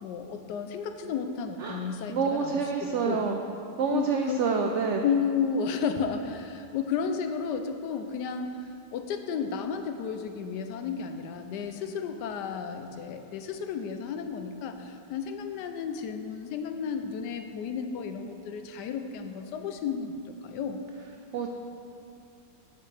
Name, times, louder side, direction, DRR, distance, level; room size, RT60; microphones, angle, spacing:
voice 1, 0.0-3.3 3.9-4.4 5.0-8.6 8.9-20.8, left 6 dB, 85° left, 7 dB, 1.2 m, -32 dB
voice 2, 2.1-3.4 3.8-5.0 21.3-21.5, right 5 dB, 75° right, 3 dB, 0.6 m, -27 dB
9.1 x 8.2 x 3.3 m, 2.5 s
omnidirectional pair, 1.8 m